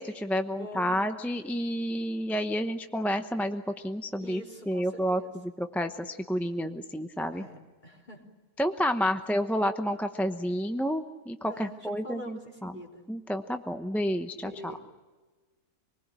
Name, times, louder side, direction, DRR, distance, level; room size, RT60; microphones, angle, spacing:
voice 1, 0.0-7.4 8.6-12.7 13.1-14.5, equal, ahead, 7 dB, 0.7 m, -30 dB
voice 2, 0.6-1.0 4.2-5.3 7.3-8.2 11.5-13.0 14.4-14.8, left 1 dB, 30° left, 1 dB, 3.7 m, -45 dB
26.0 x 20.5 x 9.0 m, 1.3 s
omnidirectional pair, 1.5 m